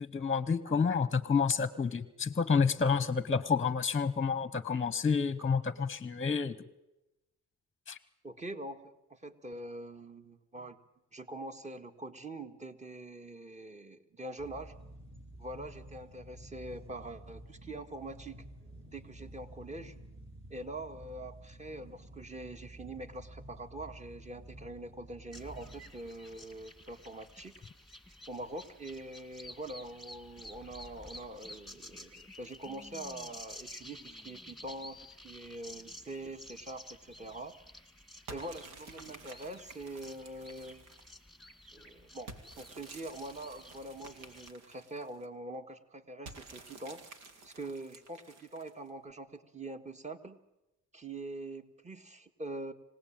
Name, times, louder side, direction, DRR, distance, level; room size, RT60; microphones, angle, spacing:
voice 1, 0.0-6.6 7.9-8.0, left 5 dB, 25° left, 16 dB, 1.0 m, -29 dB
voice 2, 8.2-10.8 11.1-14.7 15.4-18.4 18.9-19.9 20.5-27.6 28.3-37.5 38.3-40.9 41.7-42.3 42.6-47.0 47.4-50.4 50.9-52.7, right 2 dB, 25° right, 7 dB, 1.9 m, -44 dB
sound 1, 14.4-25.9, right 1 dB, 40° right, 6.2 m, -51 dB
sound 2, 25.3-44.5, left 1 dB, ahead, 2.0 m, -52 dB
sound 3, 38.3-41.2 42.3-45.3 46.2-48.9, right 3 dB, 80° right, 2.8 m, -52 dB
26.0 x 18.0 x 9.0 m, 0.95 s
cardioid pair, 90°, 30 cm